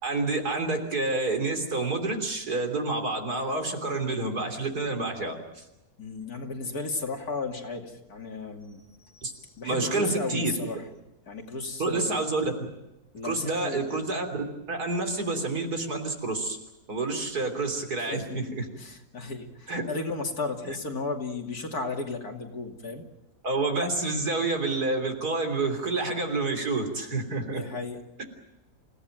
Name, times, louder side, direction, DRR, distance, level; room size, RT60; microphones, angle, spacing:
voice 1, 0.0-5.6 9.2-9.3 9.6-10.5 11.8-12.7 13.2-14.3 14.7-16.6 16.9-18.7 19.7-19.8 23.4-27.6 28.2-28.3, right 3 dB, 80° right, 4 dB, 4.0 m, -28 dB
voice 2, 6.0-8.8 9.1-9.3 9.6-10.8 11.3-12.2 13.1-14.1 18.1-18.4 18.8-23.0 27.4-28.0, left 3 dB, 70° left, 2 dB, 3.1 m, -34 dB
28.0 x 17.0 x 9.2 m, 0.95 s
omnidirectional pair, 1.6 m